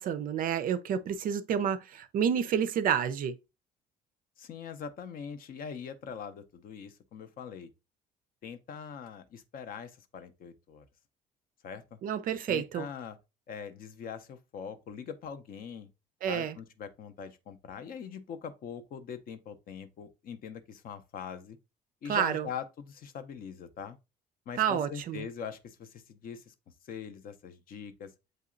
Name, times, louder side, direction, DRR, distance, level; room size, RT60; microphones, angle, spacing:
voice 1, 0.0-3.4 12.0-12.9 16.2-16.6 22.1-22.5 24.6-25.3, right 8 dB, 45° right, 0.4 m, -29 dB
voice 2, 4.4-7.7 8.4-10.9 11.6-12.0 12.5-13.2 13.5-15.9 16.3-21.6 22.0-24.0 24.5-26.5 26.9-28.1, left 7 dB, 45° left, 0.6 m, -42 dB
7.5 x 2.7 x 2.5 m
figure-of-eight pair, 50°, 21 cm